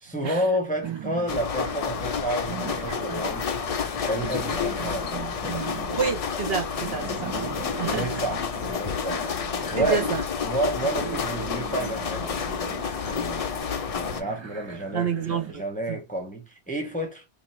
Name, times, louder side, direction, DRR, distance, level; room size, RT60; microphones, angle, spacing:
voice 1, 0.0-3.5 4.1-6.0 7.8-9.3 9.7-10.1 10.4-12.6 13.1-13.5 13.9-17.3, right 1 dB, 10° left, 0.7 m, -30 dB
sound 1, 0.8-15.5, right 7 dB, 40° right, 0.4 m, -39 dB
sound 2, 1.3-14.2, left 6 dB, 55° left, 0.4 m, -30 dB
voice 2, 5.9-7.3 7.8-8.2 9.8-10.2 14.9-15.6 15.9-16.0, right 7 dB, 60° right, 0.9 m, -28 dB
2.9 x 2.7 x 4.2 m
omnidirectional pair, 1.2 m